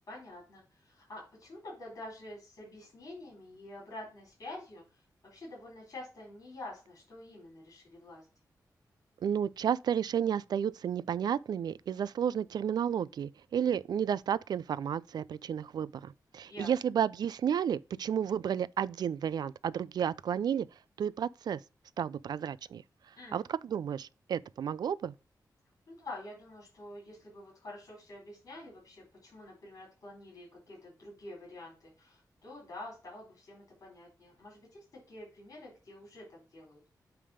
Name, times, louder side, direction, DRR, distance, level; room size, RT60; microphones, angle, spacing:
voice 1, 0.1-8.3 16.5-16.7 23.2-23.5 25.9-36.8, left 2 dB, 50° left, 4.1 m, -48 dB
voice 2, 9.2-20.7 21.0-21.6 22.0-22.8 23.3-25.1, right 8 dB, 75° right, 0.3 m, -32 dB
8.7 x 3.5 x 5.0 m
wide cardioid pair, 170°, 7 cm